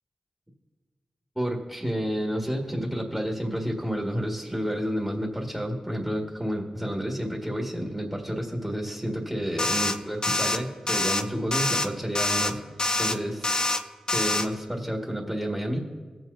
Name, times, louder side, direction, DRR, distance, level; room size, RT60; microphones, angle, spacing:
voice 1, 1.4-12.6 13.0-13.5 14.1-15.8, equal, 10° right, -1 dB, 1.9 m, -30 dB
sound 1, 9.6-10.0 10.2-10.6 10.9-11.2 11.5-11.9 12.2-12.5 12.8-13.2 13.4-13.8 14.1-14.5, left 2 dB, 40° left, 0.7 m, -25 dB
19.5 x 7.6 x 2.7 m, 1.5 s
cardioid pair, 50°, 2 cm